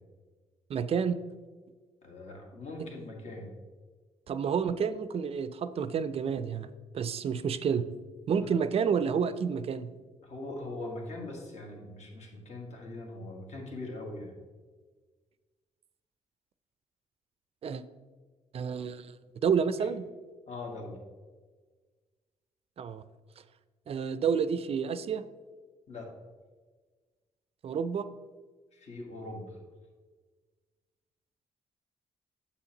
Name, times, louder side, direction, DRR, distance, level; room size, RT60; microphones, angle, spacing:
voice 1, 0.7-1.2 2.8-2.9 4.3-7.9 8.3-9.9 17.6-17.8 18.5-19.2 19.4-20.0 22.8-23.0 23.9-25.3 27.6-28.1, right 6 dB, 50° right, 13 dB, 0.4 m, -29 dB
voice 2, 2.0-3.5 8.3-8.6 10.2-14.3 19.8-19.9 20.5-21.0 25.9-26.1 28.7-29.6, left 2 dB, 60° left, 0 dB, 1.6 m, -41 dB
7.0 x 7.0 x 2.9 m, 1.4 s
cardioid pair, 75°, 13 cm